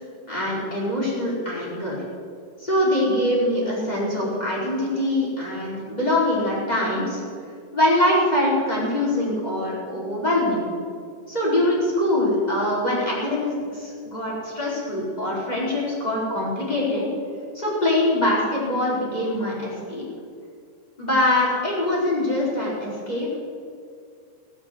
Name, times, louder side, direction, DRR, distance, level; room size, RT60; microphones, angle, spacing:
voice 1, 0.3-2.0 2.6-7.2 7.7-10.6 11.3-17.1 17.5-20.0 21.0-23.4, left 1 dB, 10° left, -5 dB, 3.9 m, -23 dB
19.0 x 8.1 x 8.0 m, 2.3 s
omnidirectional pair, 5.2 m